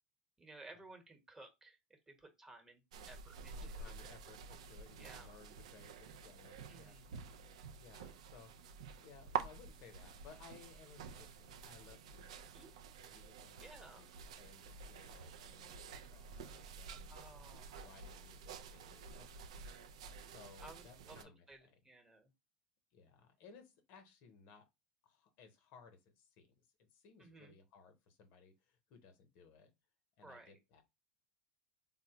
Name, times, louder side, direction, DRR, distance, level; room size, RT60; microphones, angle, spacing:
voice 1, 0.4-3.9 5.0-5.3 6.7-7.1 12.5-12.7 13.6-14.0 17.1-17.9 20.6-21.2 21.5-22.3 27.2-27.5 30.2-30.6, right 2 dB, 15° right, 1.0 m, -57 dB
sound 1, 2.9-21.2, right 6 dB, 80° right, 0.4 m, -49 dB
voice 2, 3.6-12.7 13.1-14.1 14.4-17.3 17.8-19.5 20.1-21.8 22.9-24.6 25.0-26.5 26.8-29.7 30.2-30.8, left 5 dB, 60° left, 0.7 m, -61 dB
3.9 x 2.1 x 2.8 m
hypercardioid pair, 90°, 3 cm